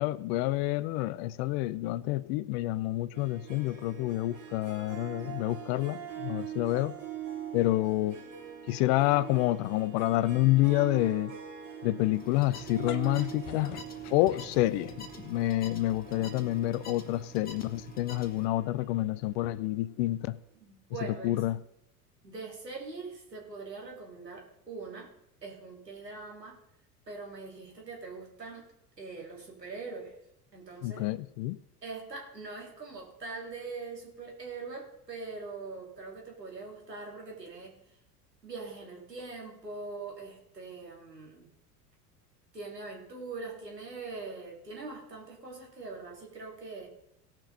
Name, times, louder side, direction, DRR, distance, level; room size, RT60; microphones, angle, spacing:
voice 1, 0.0-7.0 7.5-8.2 8.7-11.4 11.8-13.8 14.1-20.4 21.2-21.6 30.8-31.6, left 16 dB, 45° left, 0.5 m, -28 dB
Harp, 3.1-19.9, right 9 dB, 30° right, 2.8 m, -44 dB
sound 1, 12.1-18.5, left 1 dB, 20° left, 2.1 m, -48 dB
sound 2, 12.6-15.2, left 11 dB, 65° left, 0.8 m, -44 dB
voice 2, 20.6-21.4 22.2-25.1 25.4-26.6 27.1-28.7 29.0-30.1 30.5-31.0 31.8-37.7 38.4-41.5 42.5-46.9, right 3 dB, 90° right, 2.6 m, -42 dB
17.5 x 6.0 x 5.5 m
figure-of-eight pair, 75°, 48 cm